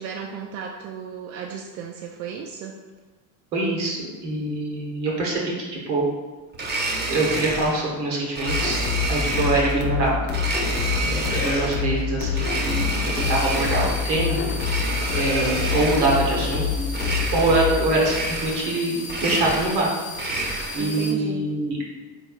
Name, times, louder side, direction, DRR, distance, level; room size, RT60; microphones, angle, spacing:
voice 1, 0.0-2.8 20.8-21.5, right 7 dB, 65° right, 1 dB, 0.5 m, -34 dB
voice 2, 3.5-6.0 7.1-10.2 11.0-14.4 15.1-16.9 17.3-19.9 20.7-21.9, right 2 dB, 80° right, -3 dB, 1.3 m, -24 dB
Domestic sounds home sounds, 6.5-7.9 8.4-9.8 10.3-11.9 12.3-14.1 14.5-16.3 16.9-17.7 18.0-18.8 19.0-20.9, right 2 dB, 20° right, 0.7 m, -29 dB
sound 1, 8.5-17.8, left 7 dB, 90° left, 0.6 m, -26 dB
sound 2, 13.2-21.1, left 2 dB, 15° left, 0.6 m, -37 dB
4.1 x 3.3 x 2.3 m, 1.3 s
hypercardioid pair, 70°, 50 cm